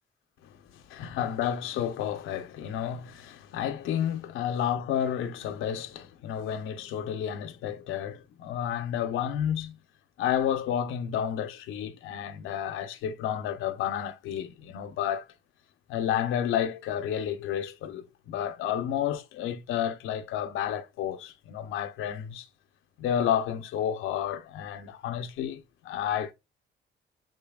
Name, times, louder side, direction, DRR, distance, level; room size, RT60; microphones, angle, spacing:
voice 1, 0.9-9.8 10.2-15.3 15.9-22.5 23.0-26.3, left 9 dB, 90° left, 0.7 m, -31 dB
5.0 x 3.8 x 2.3 m
cardioid pair, 90°, 20 cm